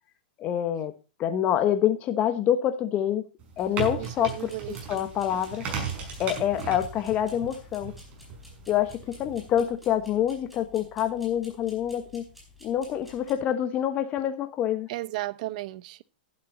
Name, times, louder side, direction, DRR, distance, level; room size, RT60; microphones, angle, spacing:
voice 1, 0.4-0.9 1.2-3.2 3.6-5.6 6.2-7.9 8.7-12.2 12.6-14.9, left 10 dB, 30° left, 1.2 m, -26 dB
sound 1, 3.4-9.6, right 6 dB, 30° right, 5.6 m, -37 dB
sound 2, 3.6-13.3, left 3 dB, ahead, 5.0 m, -52 dB
voice 2, 4.0-5.0 14.9-16.0, right 18 dB, 55° right, 0.7 m, -35 dB
11.5 x 10.5 x 4.0 m
hypercardioid pair, 140°, 5 cm